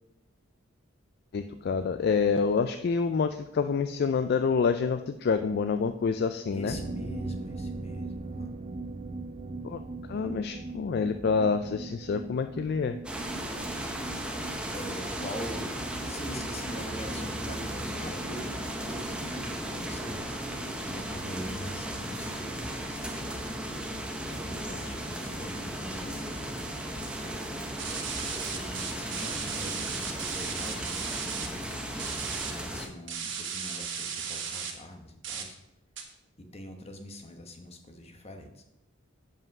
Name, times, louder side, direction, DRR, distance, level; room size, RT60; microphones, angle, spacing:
voice 1, 1.3-6.8 9.6-9.8 10.1-13.0, left 5 dB, 50° left, 9 dB, 0.3 m, -27 dB
voice 2, 6.5-8.5 14.7-15.8 16.0-23.9 24.3-27.7 28.3-32.2 32.5-35.6 36.4-38.6, left 1 dB, 30° left, 4 dB, 1.0 m, -43 dB
sound 1, 6.7-22.1 22.3-22.4 22.7-22.8, right 3 dB, 30° right, 0.4 m, -41 dB
sound 2, 13.0-32.9, right 1 dB, 5° right, 0.7 m, -36 dB
sound 3, 27.8-31.5 32.0-32.5 33.1-34.7 35.2-35.4 36.0-36.1, right 7 dB, 60° right, 1.3 m, -35 dB
7.3 x 5.4 x 6.0 m, 0.87 s
head